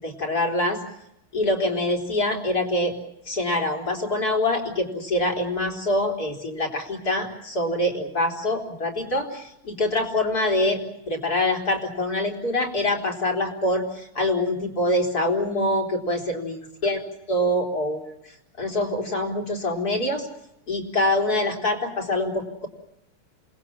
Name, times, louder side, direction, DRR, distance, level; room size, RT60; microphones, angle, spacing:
voice 1, 0.0-0.8 1.3-3.0 3.3-10.8 11.1-17.0 17.3-18.0 18.6-20.3 20.7-22.7, left 1 dB, 45° left, 2 dB, 4.7 m, -25 dB
28.5 x 20.5 x 7.4 m, 0.82 s
omnidirectional pair, 2.3 m